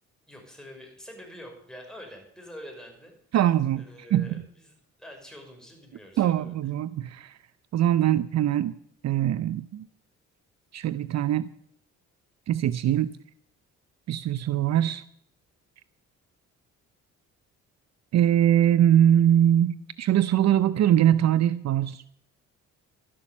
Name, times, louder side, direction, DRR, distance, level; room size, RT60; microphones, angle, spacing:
voice 1, 0.3-3.1 3.7-6.7, equal, ahead, 1 dB, 5.8 m, -46 dB
voice 2, 3.3-3.8 4.1-4.3 6.2-7.3 7.7-8.7 9.0-9.9 10.7-11.5 12.5-13.1 14.1-15.0 18.1-22.0, right 11 dB, 60° right, 15 dB, 0.6 m, -22 dB
12.5 x 11.5 x 7.2 m, 0.64 s
cardioid pair, 90°, 30 cm